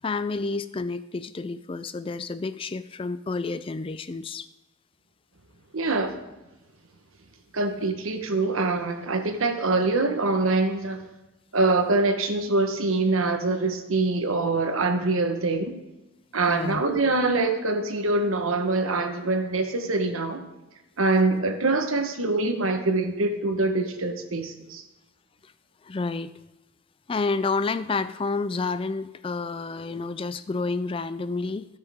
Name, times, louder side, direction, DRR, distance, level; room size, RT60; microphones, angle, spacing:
voice 1, 0.0-4.5 16.5-16.8 25.4-25.5 25.8-26.3 27.1-31.7, left 3 dB, 25° left, 14 dB, 0.3 m, -29 dB
voice 2, 5.7-6.2 7.5-11.0 11.5-15.7 16.3-20.4 21.0-24.8, right 3 dB, 75° right, 6 dB, 1.2 m, -24 dB
18.5 x 6.4 x 3.6 m, 1.0 s
head